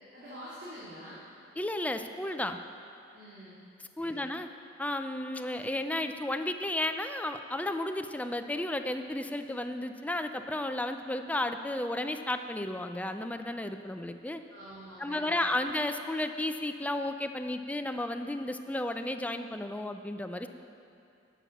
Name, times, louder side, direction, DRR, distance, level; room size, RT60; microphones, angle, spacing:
voice 1, 0.1-1.2 3.1-3.6 4.0-4.2 14.5-15.4, equal, 75° right, -10 dB, 2.5 m, -46 dB
voice 2, 1.6-2.6 4.0-4.5 4.8-14.4 15.0-20.5, left 1 dB, 10° left, 7 dB, 0.4 m, -33 dB
11.0 x 7.3 x 6.0 m, 2.5 s
head